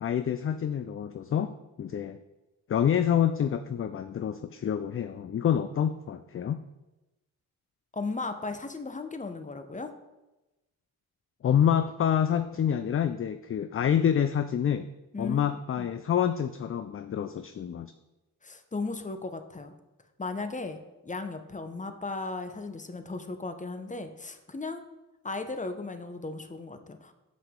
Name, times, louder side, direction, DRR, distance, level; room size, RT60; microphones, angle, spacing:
voice 1, 0.0-2.2 2.7-6.6 11.4-14.9 15.2-17.9, left 9 dB, 35° left, 11 dB, 0.4 m, -27 dB
voice 2, 7.9-9.9 15.1-15.4 18.4-19.7 20.2-20.8 21.0-24.9 25.2-27.1, left 3 dB, 20° left, 8 dB, 0.8 m, -36 dB
7.5 x 5.5 x 3.7 m, 1.0 s
supercardioid pair, 45°, 38 cm